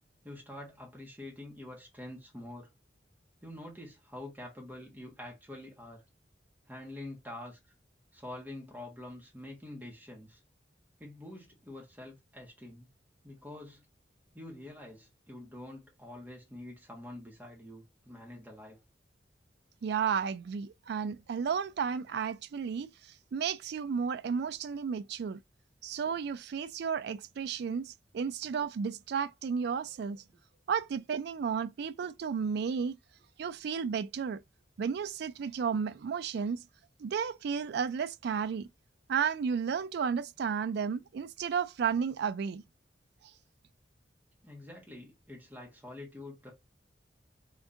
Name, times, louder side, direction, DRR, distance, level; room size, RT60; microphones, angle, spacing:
voice 1, 0.2-2.7 3.4-6.0 6.7-7.6 8.1-10.4 11.0-12.9 13.2-13.8 14.3-18.8 44.4-46.5, left 1 dB, 10° right, 1.4 m, -46 dB
voice 2, 19.8-22.9 23.3-25.4 25.8-30.2 30.7-33.0 33.4-34.4 34.8-36.6 37.0-38.7 39.1-42.6, right 6 dB, 65° right, 0.3 m, -33 dB
3.6 x 3.5 x 2.6 m
head